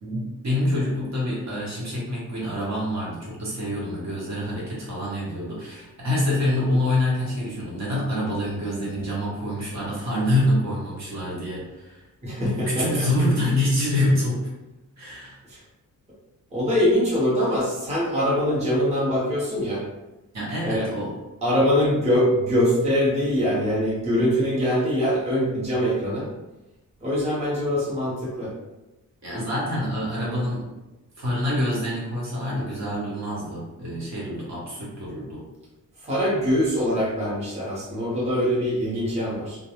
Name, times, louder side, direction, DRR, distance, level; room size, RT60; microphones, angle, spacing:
voice 1, 0.0-12.0 12.4-14.5 15.0-15.4 20.3-21.1 29.2-30.7 31.2-35.4, left 1 dB, 55° right, -6 dB, 1.0 m, -26 dB
voice 2, 12.2-13.1 15.5-15.6 16.5-19.8 20.6-20.9 21.4-26.3 27.0-28.5 36.0-39.6, equal, 20° right, -8 dB, 0.8 m, -23 dB
2.3 x 2.2 x 2.9 m, 1.0 s
wide cardioid pair, 160°, 34 cm